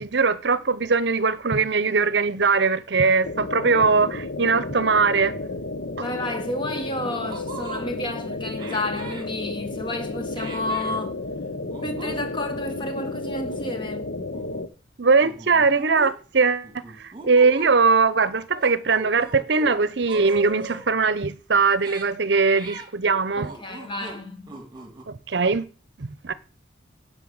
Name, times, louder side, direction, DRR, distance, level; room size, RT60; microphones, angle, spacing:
voice 1, 0.0-5.4 6.0-6.1 15.0-16.7 17.0-23.5 25.1-25.7 26.0-26.3, right 4 dB, 60° right, 0.7 m, -21 dB
sound 1, 3.2-14.7, left 2 dB, 60° left, 0.9 m, -32 dB
voice 2, 6.0-11.1 11.8-14.1 23.3-24.6, left 1 dB, 25° left, 1.5 m, -31 dB
sound 2, 7.2-7.8 8.6-9.3 10.3-11.0 11.7-12.2 12.5-12.7 13.5-14.0 14.3-14.6 15.2-16.1 16.6-17.7 18.5-19.8 20.1-20.9 21.7-22.1 22.5-22.9 23.4-24.2 24.5-25.0, right 2 dB, 25° right, 1.9 m, -39 dB
10.5 x 5.7 x 7.2 m
head